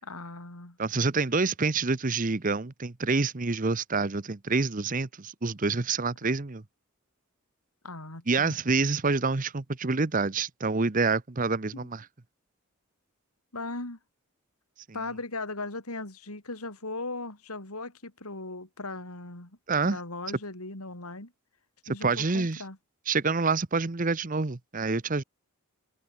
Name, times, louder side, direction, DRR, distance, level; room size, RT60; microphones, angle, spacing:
voice 1, 0.0-0.8 7.8-8.6 13.5-14.0 14.9-19.5 19.8-21.3 21.9-22.8, left 2 dB, 85° left, 4.5 m, -38 dB
voice 2, 0.8-6.6 8.3-12.1 19.7-20.0 22.0-22.6 23.1-25.2, right 4 dB, 35° right, 0.8 m, -27 dB
head